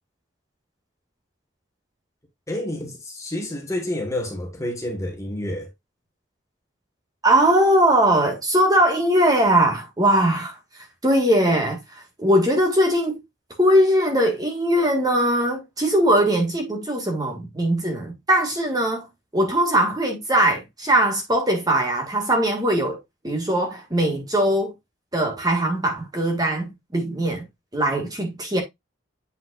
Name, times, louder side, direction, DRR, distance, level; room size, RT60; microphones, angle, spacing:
voice 1, 2.5-5.7, left 1 dB, 15° left, 1.6 m, -29 dB
voice 2, 7.2-10.6 11.0-11.8 12.2-13.2 13.6-19.1 19.3-24.7 25.1-27.4 27.7-28.6, right 1 dB, 20° right, 1.7 m, -20 dB
8.1 x 5.5 x 2.5 m
head